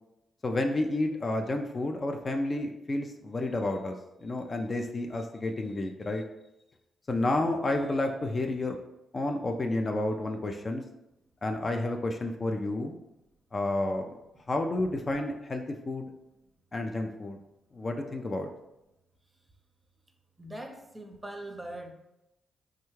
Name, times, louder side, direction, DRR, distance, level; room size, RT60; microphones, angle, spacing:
voice 1, 0.4-6.2 7.1-8.8 9.1-10.8 11.4-12.9 13.5-14.1 14.5-16.1 16.7-17.4 17.7-18.5, left 2 dB, 40° left, 4 dB, 0.4 m, -30 dB
voice 2, 20.4-21.9, right 1 dB, 20° right, 3 dB, 0.6 m, -41 dB
3.5 x 2.2 x 3.1 m, 0.90 s
supercardioid pair, 50°, 0 cm